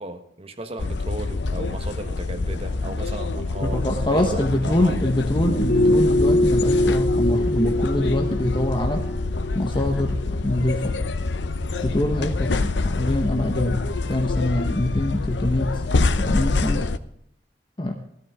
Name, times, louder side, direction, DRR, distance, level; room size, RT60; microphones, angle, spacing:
voice 1, 0.0-4.9, right 1 dB, 35° right, 6 dB, 1.4 m, -36 dB
sound 1, 0.8-17.0, left 3 dB, 80° left, 0.7 m, -26 dB
voice 2, 3.6-9.0 9.5-11.0 11.8-13.8 14.1-15.8 16.2-16.8 17.8-17.9, left 1 dB, 30° left, 2 dB, 1.3 m, -24 dB
sound 2, 5.4-10.5 10.8-10.9, left 1 dB, 55° left, 2.1 m, -23 dB
15.5 x 13.5 x 3.7 m, 0.70 s
head